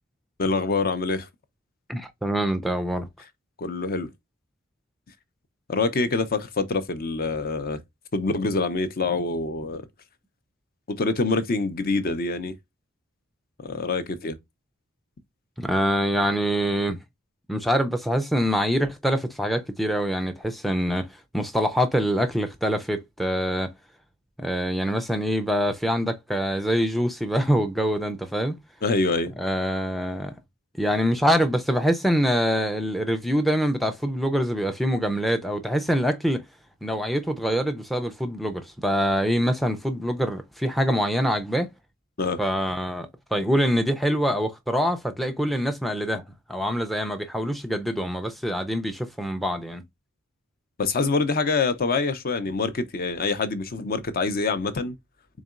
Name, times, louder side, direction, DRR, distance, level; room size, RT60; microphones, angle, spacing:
voice 1, 0.4-1.3 3.6-4.1 5.7-7.8 8.1-9.8 10.9-12.5 13.6-14.4 28.8-29.3 42.2-42.4 50.8-55.0, left 3 dB, 45° left, 0.6 m, -25 dB
voice 2, 1.9-3.1 15.6-17.0 17.5-23.7 24.4-28.6 29.4-30.3 30.8-36.5 36.8-41.7 42.4-49.8, equal, ahead, 0.4 m, -25 dB
4.0 x 3.6 x 2.4 m
head